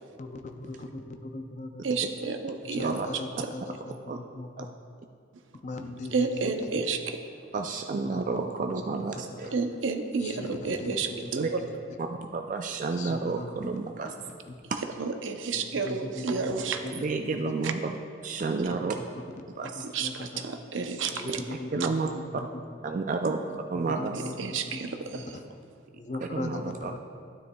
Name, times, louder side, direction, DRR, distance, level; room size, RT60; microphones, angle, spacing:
voice 1, 0.2-2.0 2.6-4.7 5.6-7.0 7.7-7.8 8.1-8.2 9.1-9.5 10.2-11.5 12.9-13.5 14.0-14.1 14.5-14.6 15.5-16.9 19.0-19.1 19.8-20.5 21.1-21.9 22.4-22.5 23.9-24.8 25.1-25.4 25.9-27.0, left 2 dB, 35° left, 5 dB, 0.5 m, -39 dB
voice 2, 1.8-3.0 6.1-7.2 9.5-11.4 15.0-16.8 17.6-17.7 19.9-21.4 24.4-25.3, right 4 dB, 75° right, 6 dB, 0.6 m, -30 dB
voice 3, 7.5-9.5 11.3-11.5 12.0-14.1 14.7-14.8 16.9-19.0 19.6-19.9 21.2-21.4 21.7-22.1 22.8-23.4 23.7-24.2 26.2-27.0, right 4 dB, 40° right, 4 dB, 0.3 m, -31 dB
12.0 x 9.5 x 2.3 m, 2.3 s
head